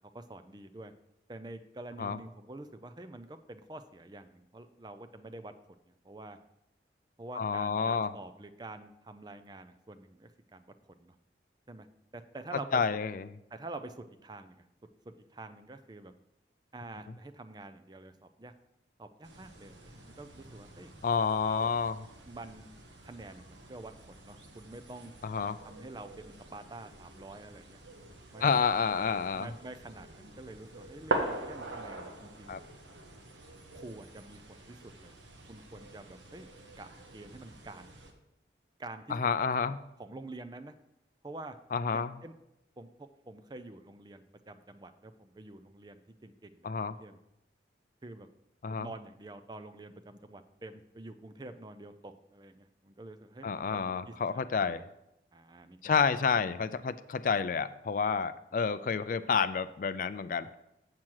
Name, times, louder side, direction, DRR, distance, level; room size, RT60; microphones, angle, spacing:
voice 1, 0.1-0.9 1.3-5.5 6.0-6.4 7.2-10.7 11.0-11.1 11.7-11.9 12.1-12.8 13.5-14.6 15.3-16.1 16.7-18.5 19.0-20.9 21.5-21.6 22.3-22.7 23.0-23.9 24.2-25.1 25.6-27.8 28.3-28.6 29.3-32.6 33.7-35.2 35.5-36.5 36.8-36.9 37.1-37.9 38.8-39.2 40.0-40.7 41.2-41.6 41.9-42.3 42.8-42.9 43.3-47.2 48.0-48.3 48.7-54.9 55.3-56.2, right 2 dB, 25° right, 9 dB, 0.4 m, -47 dB
voice 2, 7.4-8.1 12.7-13.3 21.0-22.0 25.2-25.6 28.4-29.5 32.5-32.6 39.1-39.8 41.7-42.2 46.6-47.0 48.6-48.9 53.4-54.8 55.8-60.5, left 5 dB, 45° left, 14 dB, 0.3 m, -29 dB
sound 1, 19.2-38.1, right 2 dB, 85° right, 1.2 m, -43 dB
7.5 x 7.3 x 4.6 m, 0.85 s
head